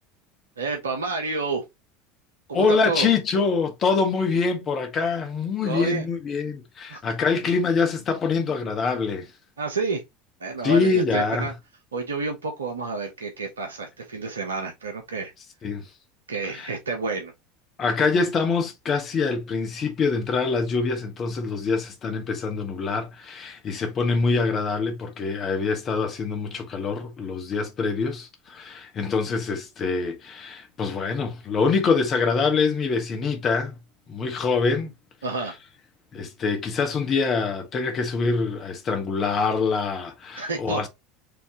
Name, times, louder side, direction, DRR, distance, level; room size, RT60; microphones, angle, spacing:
voice 1, 0.6-1.6 2.5-3.1 5.6-6.1 6.9-7.0 9.6-10.0 10.4-11.5 11.9-15.3 16.3-17.3 35.2-35.5 40.4-40.9, right 3 dB, 85° right, 0.9 m, -29 dB
voice 2, 2.5-9.3 10.6-11.5 15.6-15.8 16.5-16.7 17.8-33.7 34.1-34.9 36.1-40.9, left 4 dB, 40° left, 1.5 m, -25 dB
5.1 x 3.4 x 2.9 m
hypercardioid pair, 80°, 0 cm